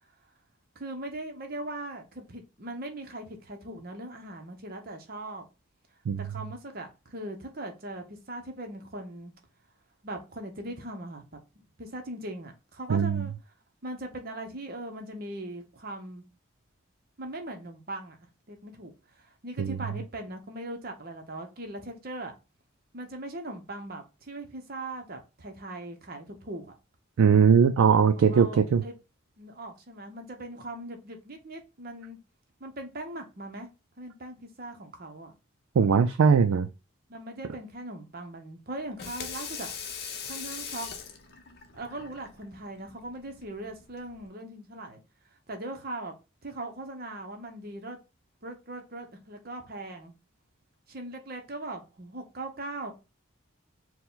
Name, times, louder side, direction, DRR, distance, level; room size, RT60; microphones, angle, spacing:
voice 1, 0.7-5.5 6.2-9.3 10.0-11.4 11.8-13.3 13.8-16.2 17.2-18.2 18.5-22.3 22.9-26.8 28.2-29.0 29.4-32.2 32.6-33.7 34.0-35.4 37.1-39.7 40.2-40.9 41.7-45.0 45.5-46.1 46.4-48.0 48.4-50.1 50.9-52.9, right 1 dB, 45° right, 0.8 m, -40 dB
voice 2, 12.9-13.3 19.6-19.8 27.2-28.8 35.8-36.7, right 6 dB, 90° right, 0.4 m, -20 dB
Water tap faucet / Sink (filling or washing), 38.8-44.3, left 6 dB, 50° left, 0.6 m, -41 dB
4.6 x 2.2 x 3.8 m
head